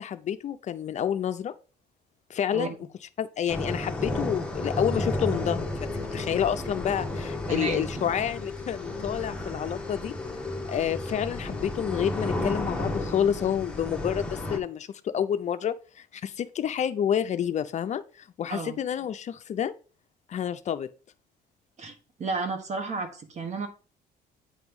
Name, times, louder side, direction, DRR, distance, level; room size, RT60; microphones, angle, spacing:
voice 1, 0.0-1.5 2.3-2.7 3.2-10.1 10.7-19.7 20.3-20.9, left 9 dB, 45° left, 0.5 m, -29 dB
sound 1, 3.5-14.6, left 2 dB, 5° left, 1.1 m, -32 dB
voice 2, 7.5-7.9 18.5-18.8 21.8-23.7, right 4 dB, 45° right, 1.4 m, -32 dB
8.6 x 3.0 x 5.3 m
cardioid pair, 110°, 17 cm